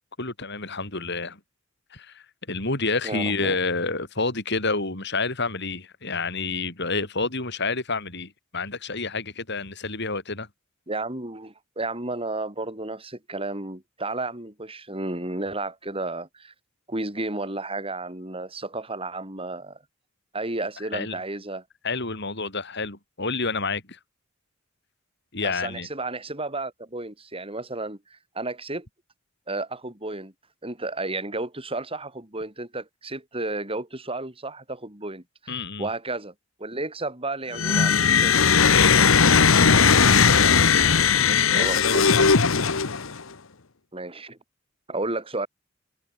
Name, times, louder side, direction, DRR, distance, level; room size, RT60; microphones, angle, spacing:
voice 1, 0.2-1.4 1.9-10.5 20.9-21.2 21.8-24.0 25.3-25.9 35.5-35.9 38.7-40.0 41.3-42.4, left 3 dB, 55° left, 7.5 m, -29 dB
voice 2, 3.0-3.6 10.9-16.5 16.9-19.8 20.3-21.6 25.4-28.9 29.5-30.3 30.6-36.3 36.6-38.4 41.5-42.1 43.9-44.4 44.9-45.5, right 2 dB, 30° right, 7.9 m, -32 dB
sound 1, 37.5-43.2, left 6 dB, 85° left, 1.3 m, -18 dB
head